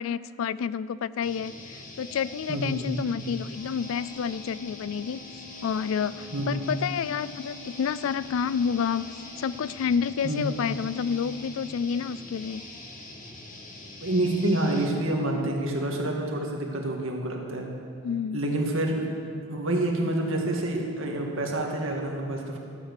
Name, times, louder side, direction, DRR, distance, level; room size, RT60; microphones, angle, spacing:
voice 1, 0.0-5.2 5.6-12.6 18.0-18.4, left 7 dB, 70° left, 18 dB, 0.3 m, -29 dB
sound 1, 1.2-14.9, left 2 dB, 35° left, 1.3 m, -44 dB
voice 2, 2.5-3.0 6.3-6.6 10.2-10.5 14.0-17.7 18.3-19.1 19.5-22.6, right 1 dB, 70° right, 0 dB, 1.9 m, -27 dB
sound 2, 3.5-11.4, left 6 dB, 85° right, 1.9 m, -48 dB
13.0 x 9.1 x 6.7 m, 2.4 s
head